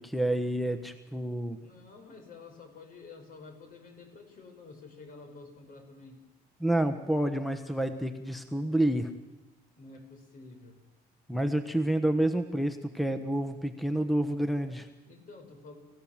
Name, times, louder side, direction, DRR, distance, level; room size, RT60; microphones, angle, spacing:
voice 1, 0.0-1.6 6.6-9.1 11.3-14.9, right 1 dB, ahead, 9 dB, 1.3 m, -29 dB
voice 2, 1.6-6.2 9.8-10.8 15.1-15.7, left 3 dB, 55° left, 4 dB, 5.8 m, -50 dB
30.0 x 15.5 x 7.5 m, 1.1 s
cardioid pair, 110°, 17 cm